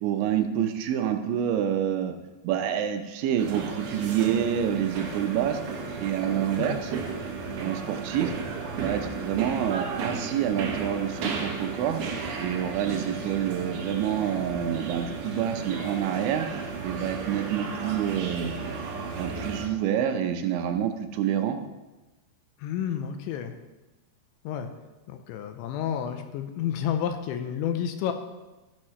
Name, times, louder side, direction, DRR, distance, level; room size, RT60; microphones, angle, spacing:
voice 1, 0.0-2.2 2.4-5.6 6.0-6.9 7.6-8.3 8.8-12.0 12.4-16.5 16.8-18.6 19.2-21.6, right 9 dB, 80° right, 6 dB, 3.0 m, -27 dB
sound 1, 3.4-19.7, right 4 dB, 65° right, 2.6 m, -34 dB
voice 2, 22.6-23.6 24.4-24.7 25.1-28.1, left 9 dB, 85° left, 7 dB, 3.0 m, -30 dB
15.0 x 10.5 x 3.2 m, 1.1 s
omnidirectional pair, 5.4 m